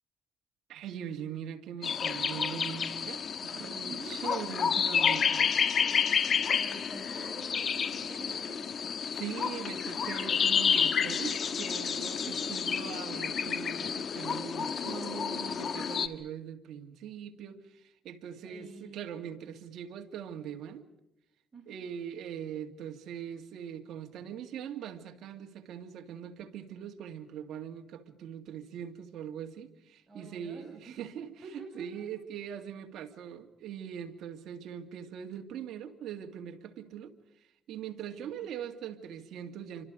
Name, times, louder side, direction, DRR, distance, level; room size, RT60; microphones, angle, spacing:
voice 1, 0.7-5.4 9.1-20.8 21.7-37.1 37.7-39.8, right 9 dB, 75° right, 2.3 m, -41 dB
sound 1, 1.8-16.1, left 7 dB, 50° left, 1.5 m, -30 dB
voice 2, 3.9-4.2 6.4-8.8 12.2-12.6 18.4-19.1 21.5-21.8 30.1-31.0 31.4-32.1 38.1-38.5, right 3 dB, 25° right, 6.7 m, -48 dB
28.5 x 25.5 x 5.2 m
cardioid pair, 115°, 0 cm